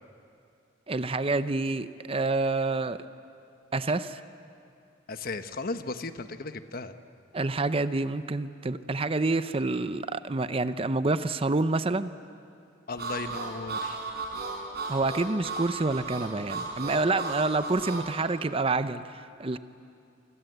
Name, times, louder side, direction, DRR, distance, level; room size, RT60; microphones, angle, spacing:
voice 1, 0.9-3.0 3.7-4.2 7.3-12.1 14.9-19.6, right 3 dB, 30° right, 12 dB, 0.7 m, -28 dB
voice 2, 5.1-6.9 12.9-14.0, left 3 dB, 50° left, 9 dB, 1.1 m, -35 dB
Harmonica, 13.0-18.1, right 3 dB, 55° right, 5.7 m, -35 dB
28.0 x 25.5 x 8.1 m, 2.5 s
head